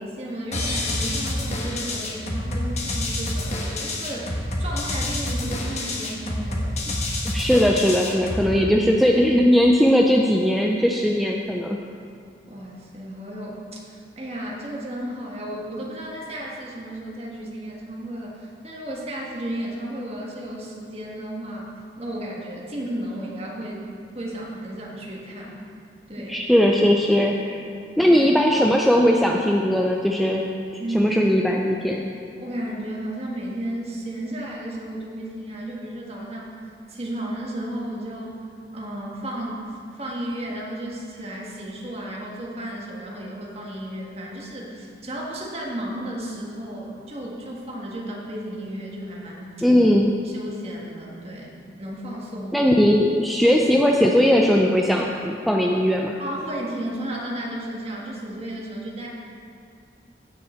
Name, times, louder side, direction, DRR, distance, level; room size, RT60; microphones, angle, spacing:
voice 1, 0.0-6.8 12.5-21.7 22.0-23.8 24.1-25.6 26.1-26.4 27.7-28.2 30.8-31.1 32.4-38.5 38.7-49.5 50.2-52.6 56.2-59.1, right 1 dB, 35° right, -3 dB, 1.5 m, -33 dB
sound 1, 0.5-8.5, left 1 dB, 40° left, 1.2 m, -28 dB
voice 2, 7.2-11.8 26.3-27.6 28.0-30.5 30.9-32.1 49.6-50.1 52.5-56.1, equal, ahead, 0 dB, 0.4 m, -19 dB
16.0 x 5.5 x 4.4 m, 2.4 s
head